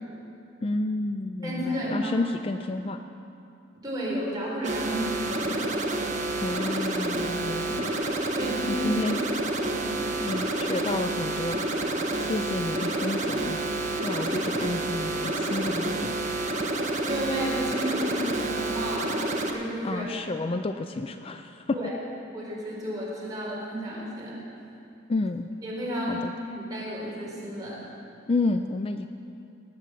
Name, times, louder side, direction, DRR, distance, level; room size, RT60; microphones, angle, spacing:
voice 1, 0.6-3.0 6.4-7.9 8.7-9.2 10.2-11.6 12.2-13.6 14.0-16.2 19.8-21.8 25.1-25.5 26.1-26.3 28.3-29.1, left 2 dB, 30° left, 8 dB, 0.4 m, -30 dB
voice 2, 1.4-2.1 3.8-5.6 7.4-7.6 8.3-9.2 9.5-10.4 17.0-20.4 21.7-21.9 22.3-24.4 25.6-27.8, equal, 20° right, -6 dB, 4.5 m, -32 dB
sound 1, 4.6-19.5, right 2 dB, 40° right, 1.3 m, -29 dB
19.0 x 8.2 x 7.6 m, 2.7 s
head